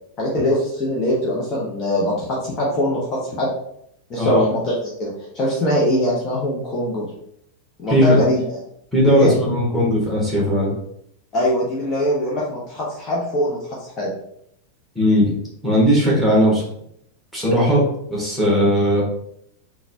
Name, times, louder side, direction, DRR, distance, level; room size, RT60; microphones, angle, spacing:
voice 1, 0.2-3.5 4.1-7.1 7.8-8.6 9.1-9.3 11.3-14.1, equal, 25° left, -5 dB, 0.8 m, -22 dB
voice 2, 7.9-8.2 8.9-10.7 14.9-15.3 15.6-16.6 17.3-17.8 18.1-19.0, equal, ahead, -5 dB, 1.4 m, -17 dB
3.9 x 2.3 x 2.7 m, 0.72 s
figure-of-eight pair, 90°, 0 cm